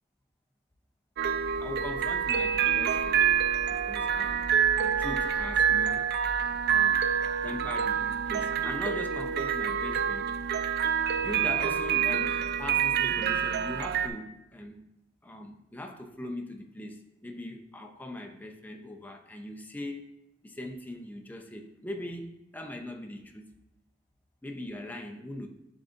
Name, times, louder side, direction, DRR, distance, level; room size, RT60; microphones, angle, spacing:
sound 1, 1.2-14.1, right 7 dB, 55° right, 0.4 m, -27 dB
voice 1, 1.6-3.3 3.7-4.4 4.8-6.1 6.7-7.0 7.4-10.6 11.2-14.9 15.2-20.1 20.4-22.3 22.5-23.5 24.4-25.5, left 1 dB, 10° left, 2 dB, 0.6 m, -40 dB
10.5 x 3.8 x 2.5 m, 0.88 s
head